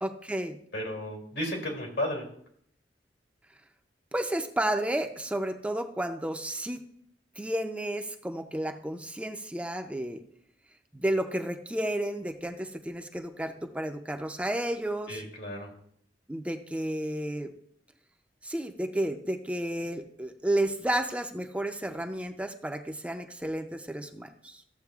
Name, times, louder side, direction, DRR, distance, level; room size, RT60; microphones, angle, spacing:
voice 1, 0.0-0.6 4.1-6.8 7.4-10.2 10.9-15.2 16.3-17.5 18.4-24.6, right 1 dB, 5° right, 5 dB, 0.5 m, -32 dB
voice 2, 0.7-2.3 15.1-15.7, left 1 dB, 85° left, 0 dB, 2.6 m, -33 dB
14.5 x 7.4 x 2.4 m, 0.67 s
head